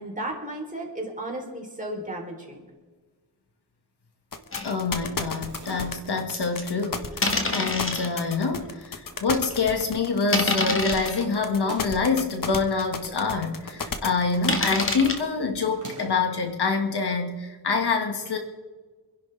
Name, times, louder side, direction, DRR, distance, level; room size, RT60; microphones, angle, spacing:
voice 1, 0.0-2.6, right 1 dB, 20° right, 0 dB, 3.7 m, -34 dB
sound 1, 4.3-15.2, left 5 dB, 50° left, 1.4 m, -33 dB
sound 2, 4.5-4.7 5.3-5.4 6.3-6.6 7.2-8.1 8.7-8.8 9.3-9.5 10.3-11.2 11.9-12.0 12.5-12.6 12.8-12.9 14.5-15.2, left 2 dB, 30° left, 1.9 m, -26 dB
voice 2, 4.6-18.4, left 4 dB, 65° left, 4 dB, 2.1 m, -26 dB
sound 3, 5.2-6.2 7.3-7.9 8.6-9.3 9.6-9.7 9.9-10.0 11.5-12.1 13.2-13.9 14.2-14.6 15.7-16.3, right 3 dB, 45° right, 3.9 m, -45 dB
27.5 x 11.0 x 3.5 m, 1.3 s
wide cardioid pair, 135°, 43 cm